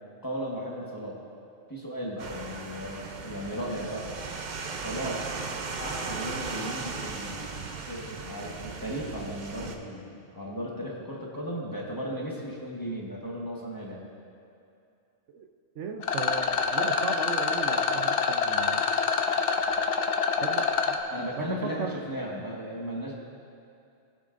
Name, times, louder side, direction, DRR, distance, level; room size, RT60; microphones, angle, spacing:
voice 1, 0.2-1.2 1.7-4.1 4.7-5.3 5.8-14.0 21.1-23.1, equal, 20° left, -4 dB, 1.3 m, -36 dB
sound 1, 2.2-9.8, right 4 dB, 45° right, 0.7 m, -37 dB
voice 2, 15.7-18.9 20.4-21.0 21.4-21.9, right 5 dB, 80° right, 5 dB, 1.0 m, -36 dB
Rattle, 16.0-21.0, left 5 dB, 80° left, 1.0 m, -26 dB
18.5 x 7.3 x 2.5 m, 2.5 s
omnidirectional pair, 1.2 m